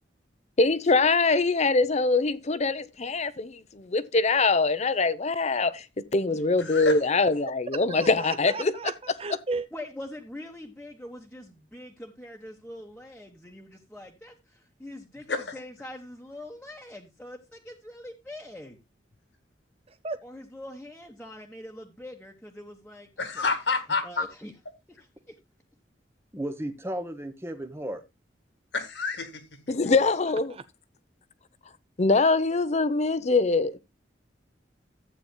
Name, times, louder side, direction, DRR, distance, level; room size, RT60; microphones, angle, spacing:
voice 1, 0.6-8.7 29.7-30.5 32.0-33.8, left 3 dB, 40° left, 0.7 m, -23 dB
voice 2, 6.6-7.0 15.3-15.5 23.2-24.2 28.7-29.4, left 4 dB, 75° left, 1.9 m, -29 dB
voice 3, 7.9-9.7 19.9-20.2 30.5-30.6, right 3 dB, 35° right, 0.6 m, -35 dB
voice 4, 9.7-18.8 20.2-23.5 24.0-24.5 24.9-25.4, left 1 dB, 5° left, 1.2 m, -43 dB
voice 5, 26.3-28.0, right 1 dB, 15° right, 1.0 m, -34 dB
14.5 x 8.8 x 2.2 m
head